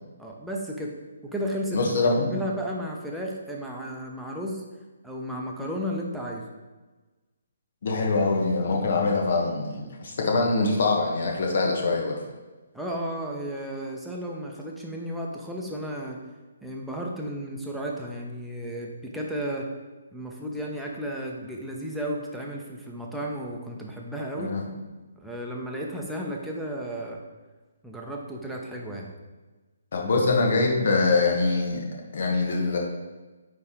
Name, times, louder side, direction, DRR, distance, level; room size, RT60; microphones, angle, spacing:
voice 1, 0.2-0.9 1.2-1.9 2.3-4.6 5.0-6.4 12.7-16.2 16.6-19.7 20.1-24.6 25.2-27.2 27.8-29.1, equal, ahead, -3 dB, 0.9 m, -33 dB
voice 2, 1.7-2.3 7.8-12.2 24.4-24.6 29.9-31.8 32.1-32.8, left 3 dB, 55° left, 0 dB, 1.5 m, -24 dB
9.4 x 3.4 x 3.8 m, 1.2 s
figure-of-eight pair, 135°, 0 cm